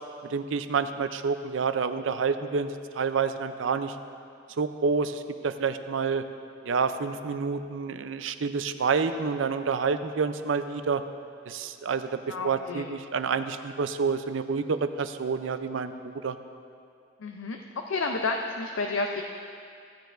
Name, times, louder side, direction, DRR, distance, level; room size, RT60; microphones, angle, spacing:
voice 1, 0.2-4.0 4.6-6.2 6.6-11.0 11.5-16.4, right 5 dB, 80° right, 10 dB, 0.5 m, -28 dB
voice 2, 12.3-12.9 17.2-17.6 17.9-19.2, left 3 dB, 90° left, 3 dB, 0.5 m, -30 dB
15.0 x 9.1 x 2.5 m, 2.4 s
head